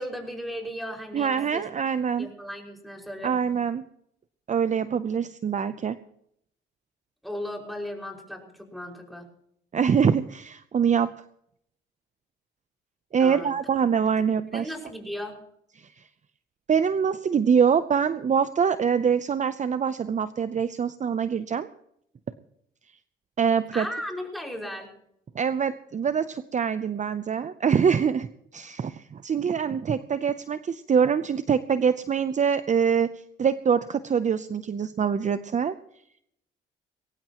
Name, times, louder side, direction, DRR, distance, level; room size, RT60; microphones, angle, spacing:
voice 1, 0.0-1.6 2.2-3.4 7.2-9.3 13.2-13.5 14.5-15.4 23.7-24.9, equal, ahead, 1 dB, 5.7 m, -36 dB
voice 2, 1.1-2.3 3.2-3.8 4.5-6.0 9.7-11.1 13.1-14.7 15.8-16.0 16.7-21.7 23.4-23.9 25.3-28.3 28.5-35.7, right 7 dB, 40° right, 13 dB, 0.7 m, -24 dB
22.0 x 18.0 x 3.0 m, 0.74 s
cardioid pair, 90°, 20 cm